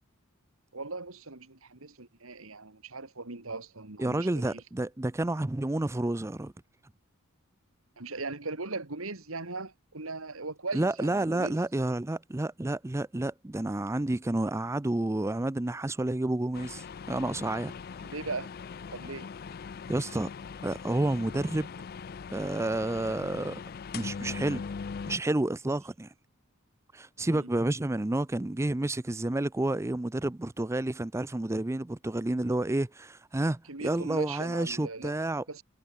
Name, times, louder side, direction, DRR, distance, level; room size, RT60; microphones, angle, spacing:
voice 1, 0.7-4.6 8.0-11.6 18.0-18.5 18.9-19.3 27.2-27.5 33.7-35.2 35.5-35.6, right 3 dB, 80° right, 2.5 m, -39 dB
voice 2, 4.0-6.5 10.7-17.7 19.9-20.3 20.6-21.7 22.3-23.6 23.9-24.6 25.1-26.1 26.9-35.6, right 2 dB, 15° right, 0.5 m, -30 dB
sound 1, 16.5-25.2, left 5 dB, 45° left, 0.4 m, -40 dB
head